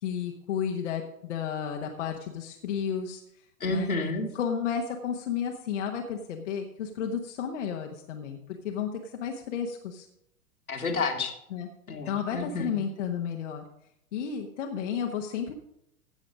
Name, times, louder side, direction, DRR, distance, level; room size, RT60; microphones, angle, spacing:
voice 1, 0.0-3.2 3.7-3.9 4.3-8.4 8.6-10.1 11.5-11.7 12.0-13.6 14.1-15.5, left 7 dB, 55° left, 2 dB, 1.2 m, -32 dB
voice 2, 3.6-4.3 10.7-11.3 11.9-12.7, left 3 dB, 75° left, 3 dB, 2.0 m, -30 dB
15.5 x 6.4 x 5.1 m, 0.79 s
figure-of-eight pair, 100°, 43 cm